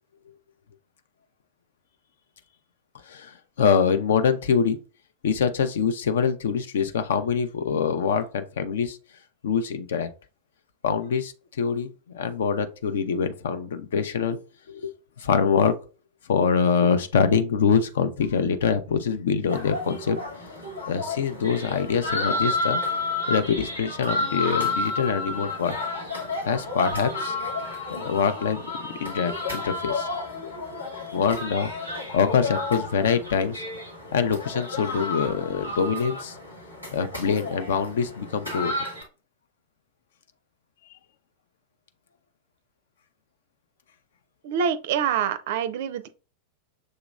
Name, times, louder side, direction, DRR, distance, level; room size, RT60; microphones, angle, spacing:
voice 1, 3.1-4.8 5.2-9.0 9.4-10.1 10.8-14.4 14.7-14.9 15.2-15.7 16.3-20.2 20.9-22.8 23.3-25.8 26.5-27.3 27.9-28.6 29.0-30.1 31.1-33.6 34.1-36.4 36.9-38.7, left 6 dB, 60° left, 0.5 m, -24 dB
sound 1, 19.5-39.0, left 2 dB, 85° left, 1.6 m, -31 dB
voice 2, 44.4-46.1, right 8 dB, 50° right, 0.4 m, -26 dB
6.3 x 2.9 x 2.4 m
figure-of-eight pair, 90°, 0 cm